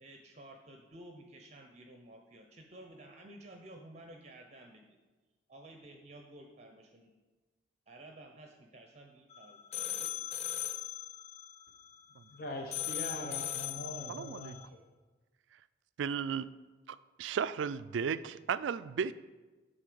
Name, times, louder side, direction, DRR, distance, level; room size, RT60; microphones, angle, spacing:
voice 1, 0.0-4.8 5.5-7.1 7.9-10.5, right 1 dB, 35° right, 3 dB, 0.6 m, -53 dB
sound 1, 9.3-12.4 12.7-14.7, left 12 dB, 35° left, 0.5 m, -39 dB
voice 2, 12.3-14.6, left 1 dB, 50° left, 1 dB, 0.8 m, -42 dB
voice 3, 14.1-14.5 16.0-16.5 16.9-19.1, right 7 dB, 75° right, 15 dB, 0.3 m, -35 dB
9.3 x 4.1 x 6.8 m, 1.2 s
head